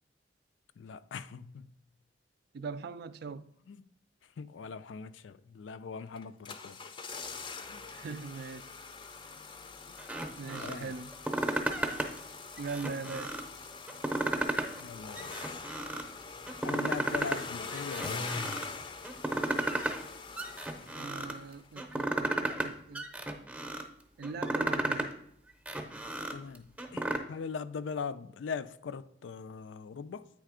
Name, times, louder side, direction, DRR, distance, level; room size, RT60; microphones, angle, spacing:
voice 1, 0.8-1.8 3.7-3.9 4.4-6.8 7.7-7.9 10.5-10.9 14.8-15.4 16.6-18.5 26.3-30.3, left 5 dB, 85° left, 0.4 m, -41 dB
voice 2, 2.5-3.5 7.9-8.7 10.4-11.1 12.6-13.4 20.9-23.1 24.2-25.2, right 4 dB, 60° right, 0.3 m, -41 dB
sound 1, 6.2-21.7 21.9-22.0, left 4 dB, 25° left, 0.5 m, -43 dB
sound 2, 10.0-10.8 11.1-12.2 12.6-13.5 13.9-14.8 15.2-16.1 16.5-17.4 17.7-18.7 19.0-20.0 20.4-21.3 21.8-22.7 22.9-23.8 24.2-25.1 25.5-27.2, right 1 dB, 10° right, 0.7 m, -33 dB
8.6 x 3.3 x 4.9 m
head